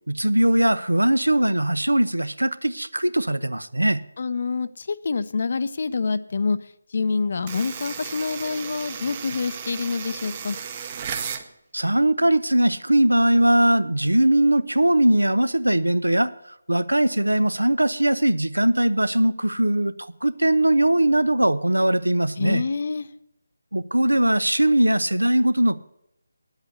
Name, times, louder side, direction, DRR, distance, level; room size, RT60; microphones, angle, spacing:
voice 1, 0.1-4.0 11.7-16.3 16.7-19.9 20.2-22.6 23.7-25.8, right 1 dB, 85° right, 15 dB, 0.7 m, -20 dB
voice 2, 4.2-6.6 6.9-10.6 22.4-23.1, left 4 dB, 45° left, 15 dB, 0.6 m, -26 dB
sound 1, 7.5-11.5, right 7 dB, 25° right, 0.8 m, -34 dB
9.4 x 8.1 x 8.1 m, 0.80 s
figure-of-eight pair, 155°, 0 cm